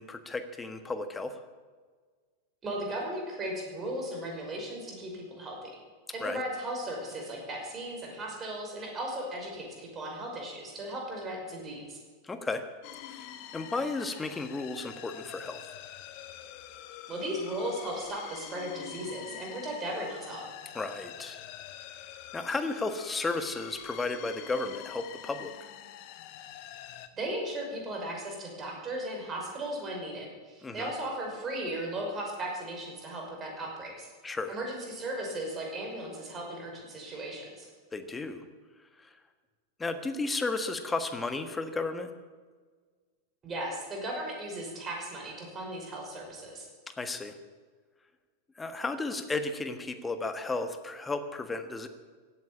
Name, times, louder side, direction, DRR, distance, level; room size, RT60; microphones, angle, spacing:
voice 1, 0.0-1.4 6.2-6.4 12.2-12.6 13.1-15.6 20.7-21.5 22.3-25.5 30.6-30.9 34.2-34.5 37.9-38.4 39.0-39.1 39.8-42.1 47.0-47.4 48.6-51.9, left 3 dB, 10° left, 9 dB, 1.5 m, -34 dB
voice 2, 2.6-5.7 6.1-12.0 17.1-20.5 27.1-34.1 34.5-37.7 43.4-46.7, right 1 dB, 25° right, 0 dB, 5.5 m, -36 dB
sound 1, 12.8-27.1, left 12 dB, 45° left, 1.1 m, -46 dB
16.5 x 9.4 x 8.6 m, 1.5 s
figure-of-eight pair, 90°, 0 cm